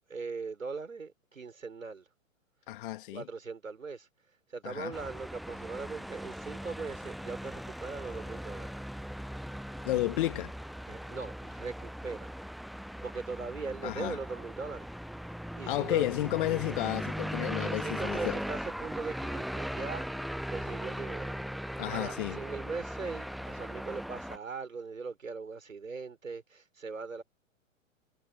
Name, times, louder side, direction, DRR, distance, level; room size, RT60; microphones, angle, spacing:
voice 1, 0.1-2.1 3.1-4.1 4.5-8.7 10.9-12.3 13.0-14.9 15.5-16.1 17.6-20.1 20.5-21.4 21.9-27.2, right 4 dB, 75° right, 4.3 m, -40 dB
voice 2, 2.7-3.3 4.6-4.9 9.8-10.5 13.8-14.2 15.7-18.4 21.8-22.4, left 16 dB, 40° left, 2.2 m, -32 dB
sound 1, 4.9-24.4, equal, ahead, 0.4 m, -39 dB
figure-of-eight pair, 115°, 40 cm